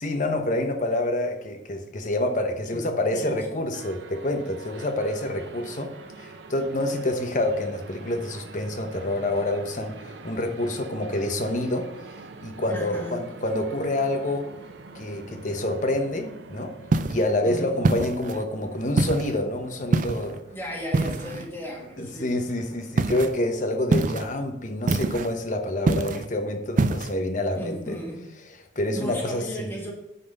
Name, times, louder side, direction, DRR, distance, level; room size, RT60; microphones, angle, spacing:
voice 1, 0.0-5.9 6.2-11.9 12.4-14.5 14.9-16.8 17.1-20.4 21.3-21.4 22.0-28.0 28.7-29.7, left 1 dB, 45° left, 5 dB, 0.9 m, -27 dB
voice 2, 2.7-3.6 12.7-13.2 17.4-17.8 20.5-22.3 27.5-28.2 28.9-29.9, equal, 10° left, -1 dB, 1.6 m, -36 dB
sound 1, 3.7-23.4, right 3 dB, 70° right, 0.7 m, -45 dB
sound 2, 16.9-17.3 17.8-18.4 19.0-19.4 19.9-20.3 20.9-21.4 23.0-23.3 23.9-24.3 24.9-25.3 25.9-26.3 26.8-27.1, right 3 dB, 45° right, 0.4 m, -24 dB
8.7 x 4.3 x 5.2 m, 0.83 s
head